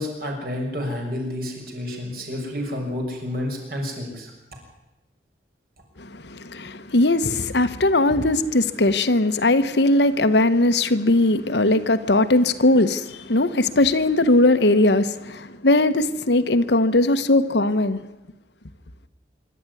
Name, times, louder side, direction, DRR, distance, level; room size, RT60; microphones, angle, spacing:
voice 1, 0.0-4.3, left 1 dB, 55° right, 6.3 m, -30 dB
voice 2, 6.0-18.0, left 2 dB, 75° left, 1.1 m, -19 dB
26.0 x 12.0 x 9.8 m
head